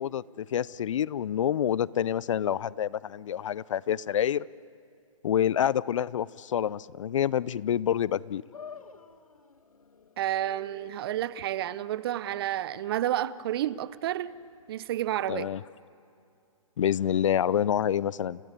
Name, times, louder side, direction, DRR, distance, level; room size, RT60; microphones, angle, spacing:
voice 1, 0.0-4.5 5.2-8.4 15.3-15.6 16.8-18.4, left 10 dB, 60° left, 0.5 m, -27 dB
sound 1, 8.5-15.0, left 6 dB, 90° left, 1.4 m, -51 dB
voice 2, 10.2-14.3 14.7-15.5, right 12 dB, 45° right, 0.7 m, -30 dB
29.5 x 17.5 x 9.6 m
hypercardioid pair, 140°, 18 cm